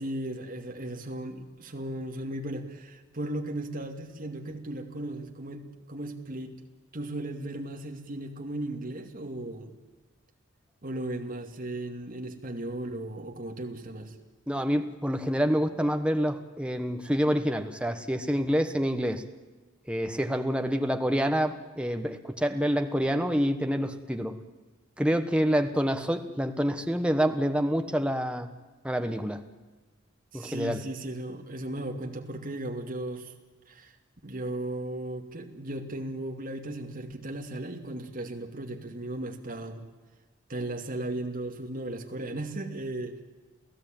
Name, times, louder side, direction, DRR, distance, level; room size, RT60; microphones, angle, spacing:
voice 1, 0.0-6.5 6.9-9.8 10.8-14.1 30.3-33.3 33.7-33.9 34.2-39.8 40.5-43.2, right 1 dB, 40° right, 3 dB, 2.4 m, -36 dB
voice 2, 14.5-19.2 19.9-24.4 25.0-28.5 28.8-29.4 30.3-30.8, equal, 5° right, 6 dB, 1.2 m, -27 dB
28.0 x 16.0 x 9.1 m, 1.3 s
head